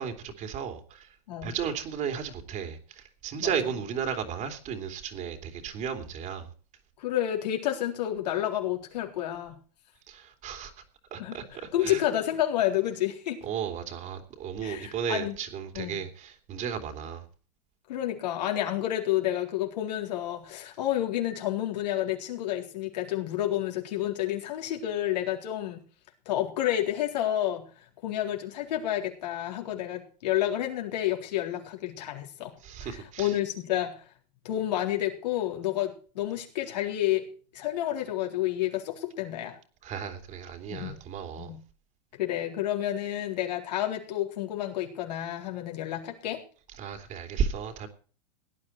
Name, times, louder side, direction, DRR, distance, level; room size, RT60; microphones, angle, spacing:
voice 1, 0.0-1.1 1.4-6.5 10.1-10.7 11.1-12.0 13.4-17.2 32.6-33.3 39.8-41.5 46.8-47.9, right 7 dB, 35° right, 3.0 m, -34 dB
voice 2, 7.0-9.6 11.2-11.4 11.7-13.4 14.6-15.3 15.7-16.0 17.9-25.8 26.3-27.6 28.0-32.5 32.8-34.0 34.4-37.3 37.5-39.6 40.7-41.0 41.4-41.6 42.2-46.4, left 12 dB, 75° left, 4.0 m, -30 dB
17.5 x 10.0 x 4.4 m
hypercardioid pair, 125°, 21 cm